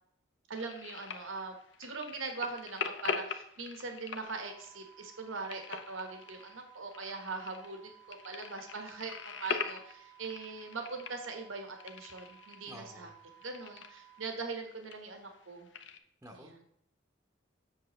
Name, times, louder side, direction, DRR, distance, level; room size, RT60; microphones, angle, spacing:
voice 1, 0.5-9.1 9.4-13.1 13.4-15.7 16.3-16.6, right 4 dB, 75° right, 4 dB, 1.2 m, -41 dB
sound 1, 0.6-16.0, left 5 dB, 65° left, 0.7 m, -43 dB
sound 2, 4.3-14.3, right 14 dB, 45° right, 1.0 m, -58 dB
voice 2, 12.7-13.1 16.2-16.6, equal, 10° right, 1 dB, 0.8 m, -50 dB
7.9 x 6.8 x 3.1 m, 0.74 s
head